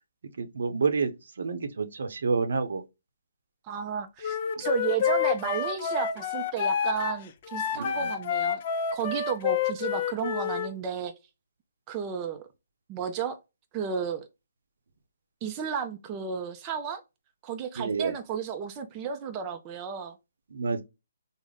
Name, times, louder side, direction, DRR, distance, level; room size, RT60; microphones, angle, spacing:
voice 1, 0.4-2.8 7.7-8.1 17.8-18.1 20.5-20.8, right 4 dB, 70° right, 0.7 m, -29 dB
voice 2, 3.7-8.6 8.9-11.1 11.9-12.5 12.9-13.4 13.7-14.3 15.4-17.0 17.4-20.2, right 7 dB, 25° right, 0.4 m, -33 dB
Wind instrument woodwind instrument, 4.2-10.7, left 7 dB, 40° left, 0.5 m, -29 dB
3.5 x 2.1 x 3.8 m
hypercardioid pair, 150°, 0 cm